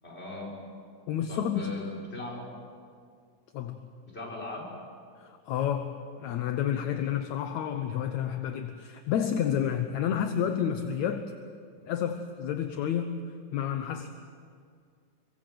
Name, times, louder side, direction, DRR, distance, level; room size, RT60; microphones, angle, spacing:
voice 1, 0.0-0.5 1.3-2.5 4.0-4.7, left 2 dB, 20° left, -2 dB, 6.2 m, -39 dB
voice 2, 1.1-1.7 3.5-3.9 5.2-11.3 11.9-13.2 13.5-14.1, left 9 dB, 70° left, 7 dB, 2.2 m, -30 dB
27.0 x 23.5 x 7.8 m, 2.2 s
omnidirectional pair, 3.6 m